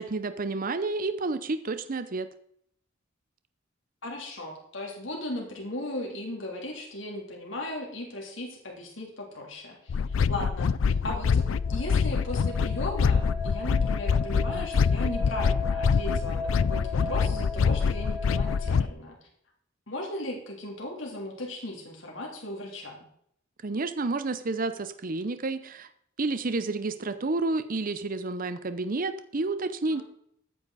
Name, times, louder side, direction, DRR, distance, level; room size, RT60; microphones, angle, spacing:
voice 1, 0.0-2.3 23.6-25.9 26.2-30.0, right 3 dB, 45° right, 11 dB, 0.7 m, -30 dB
voice 2, 4.0-11.4 11.7-19.2 19.9-23.0 29.9-30.0, left 1 dB, 70° left, -1 dB, 3.3 m, -37 dB
sound 1, 9.9-18.9, left 5 dB, 90° left, 0.4 m, -25 dB
sound 2, 10.8-18.8, left 3 dB, 15° right, 2.9 m, -38 dB
14.0 x 9.5 x 4.1 m, 0.69 s
head